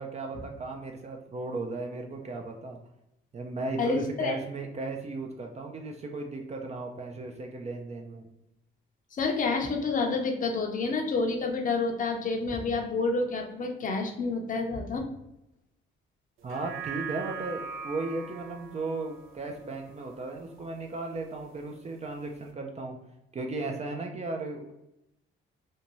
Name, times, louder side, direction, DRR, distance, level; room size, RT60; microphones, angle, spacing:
voice 1, 0.0-2.8 3.3-8.2 16.4-23.0 23.3-24.7, right 3 dB, 35° right, 2 dB, 0.4 m, -35 dB
voice 2, 3.8-4.3 9.1-15.0, left 3 dB, 40° left, 3 dB, 0.6 m, -29 dB
sound 1, 16.4-21.0 21.4-21.5, right 6 dB, 85° right, 0.5 m, -41 dB
2.6 x 2.2 x 3.0 m, 0.87 s
cardioid pair, 90°, 20 cm